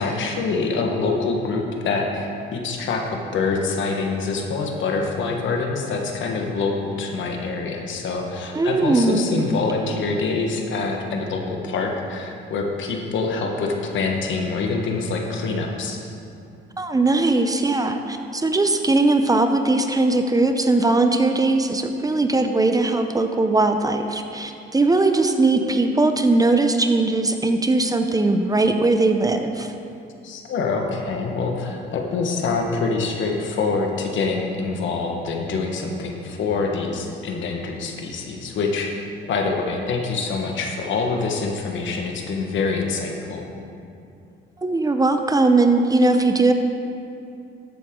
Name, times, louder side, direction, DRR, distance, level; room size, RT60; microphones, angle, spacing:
voice 1, 0.0-16.0 30.2-38.9 39.3-43.4, left 4 dB, 75° left, 2 dB, 1.4 m, -25 dB
voice 2, 8.5-9.3 16.8-29.7 44.6-46.5, right 2 dB, 20° right, 6 dB, 0.7 m, -19 dB
13.5 x 8.1 x 3.8 m, 2.6 s
cardioid pair, 90°, 20 cm